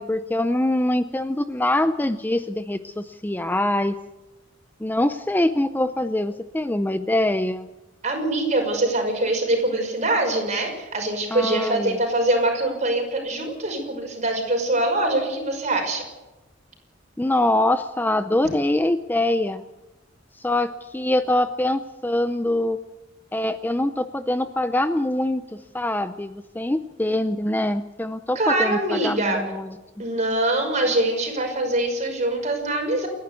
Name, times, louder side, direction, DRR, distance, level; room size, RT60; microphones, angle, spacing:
voice 1, 0.0-4.0 4.8-7.7 11.3-12.0 17.2-19.6 20.4-22.8 23.3-29.7, left 1 dB, 10° left, 11 dB, 0.6 m, -24 dB
voice 2, 8.0-16.0 28.4-29.4 30.0-33.1, right 1 dB, 40° right, 2 dB, 5.9 m, -23 dB
28.5 x 11.0 x 8.3 m, 1.1 s
head